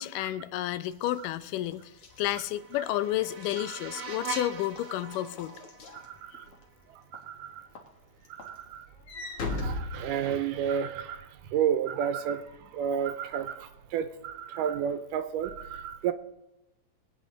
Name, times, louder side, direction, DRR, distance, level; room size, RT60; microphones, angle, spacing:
voice 1, 0.0-1.9 2.2-5.5, left 14 dB, 85° left, 14 dB, 2.3 m, -31 dB
Walk footsteps / Slam, 0.9-6.6 7.1-7.4 7.8-10.8, left 2 dB, 50° left, 2.1 m, -40 dB
sound 1, 2.0-7.0, right 4 dB, 50° right, 1.2 m, -42 dB
voice 2, 3.7-4.0 5.9-6.5 6.9-7.7 8.3-8.9 9.5-16.1, right 8 dB, 85° right, 11 dB, 2.4 m, -32 dB
22.0 x 9.1 x 3.9 m, 0.92 s
omnidirectional pair, 3.7 m